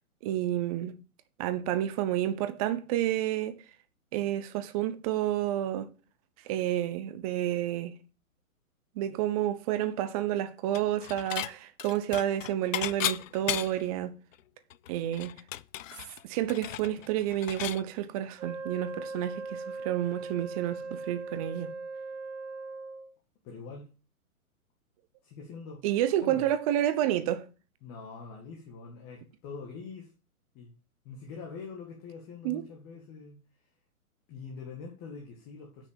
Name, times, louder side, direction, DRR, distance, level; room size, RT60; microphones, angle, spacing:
voice 1, 0.2-0.9 1.4-3.6 4.1-5.9 6.5-7.9 9.0-14.1 14.9-15.3 16.2-21.7 25.8-27.4 32.4-32.6, right 12 dB, 25° right, 0.7 m, -30 dB
Dishes pots and pans / Chink clink, 10.7-11.5 11.8-13.9 14.3-14.4 14.7-17.8, left 12 dB, 65° left, 0.5 m, -35 dB
Wind instrument woodwind instrument, 18.4-23.1, right 3 dB, 60° right, 1.7 m, -39 dB
voice 2, 23.4-23.9 25.2-25.8 26.2-26.5 27.8-30.1 30.5-30.7 31.0-33.4 34.3-35.9, left 5 dB, 30° left, 1.9 m, -44 dB
7.7 x 6.2 x 5.3 m
figure-of-eight pair, 125°, 43 cm